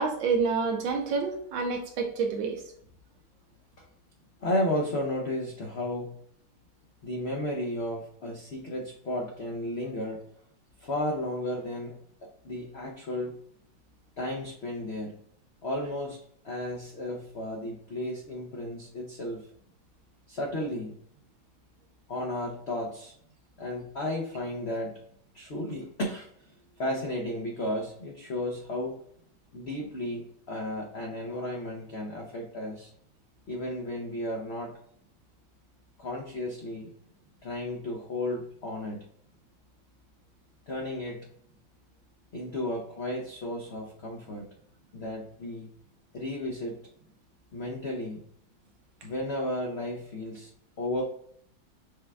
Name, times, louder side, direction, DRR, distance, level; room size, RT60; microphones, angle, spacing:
voice 1, 0.0-2.6, right 4 dB, 75° right, 2 dB, 1.6 m, -28 dB
voice 2, 4.4-6.2 7.0-10.2 10.8-12.0 12.4-13.3 14.2-15.1 15.6-16.2 16.4-19.5 20.3-20.9 22.1-23.1 23.6-24.9 25.3-26.3 26.8-29.0 29.5-32.9 33.5-34.7 36.0-36.9 37.4-39.0 40.7-41.3 42.3-44.5 44.9-45.7 46.1-46.8 47.5-48.2 49.0-50.5 50.8-51.0, left 1 dB, 75° left, 0 dB, 0.5 m, -33 dB
6.6 x 2.3 x 3.4 m, 0.65 s
omnidirectional pair, 2.1 m